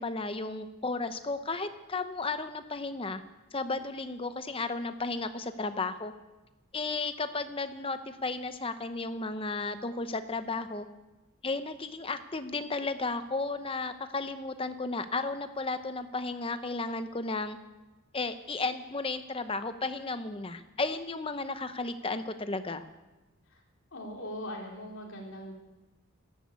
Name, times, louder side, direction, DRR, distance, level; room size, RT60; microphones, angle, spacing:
voice 1, 0.0-3.2 3.5-6.1 6.7-10.9 11.4-17.6 18.1-22.8, left 3 dB, 25° left, 10 dB, 0.8 m, -34 dB
voice 2, 23.9-25.5, left 1 dB, 60° left, -1 dB, 3.7 m, -40 dB
13.5 x 13.0 x 8.4 m, 1.1 s
head